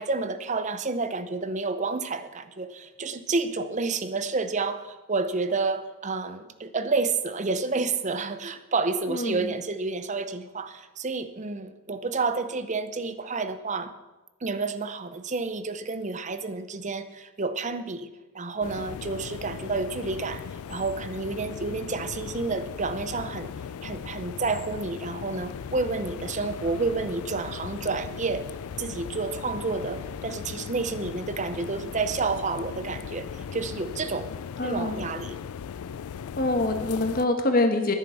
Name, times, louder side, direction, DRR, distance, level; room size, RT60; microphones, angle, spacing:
voice 1, 0.0-13.9 14.4-18.1 18.3-23.5 23.8-34.3 34.6-35.4, right 3 dB, 35° right, 0.7 m, -30 dB
voice 2, 9.1-9.5 34.6-35.0 36.4-37.9, left 2 dB, 40° left, 1.4 m, -25 dB
sound 1, 18.6-37.3, left 7 dB, 85° left, 0.4 m, -38 dB
10.0 x 9.5 x 6.9 m
head